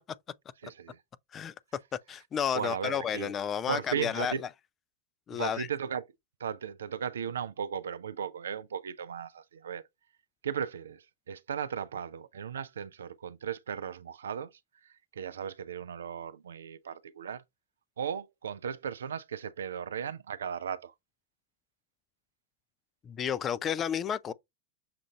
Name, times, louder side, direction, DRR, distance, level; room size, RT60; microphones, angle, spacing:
voice 1, 0.6-1.0 2.5-3.3 3.7-4.4 5.3-6.0 6.4-9.8 10.4-14.5 14.8-17.4 18.0-20.9, right 8 dB, 65° right, 0.4 m, -36 dB
voice 2, 2.1-4.3 5.3-5.7 23.1-24.3, left 8 dB, 25° left, 0.4 m, -31 dB
6.7 x 2.5 x 2.8 m
figure-of-eight pair, 90°, 0 cm